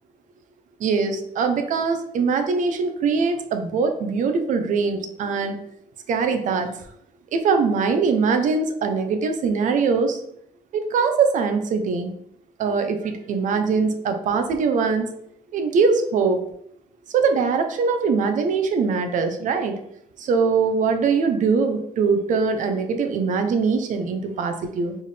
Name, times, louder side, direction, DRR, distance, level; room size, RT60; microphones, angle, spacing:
voice 1, 0.8-5.6 6.1-6.8 7.3-10.2 10.7-12.1 12.6-15.1 15.5-16.4 17.1-19.8 20.2-25.0, right 5 dB, 65° right, 6 dB, 0.7 m, -22 dB
4.4 x 3.5 x 3.3 m, 0.73 s
cardioid pair, 140°, 14 cm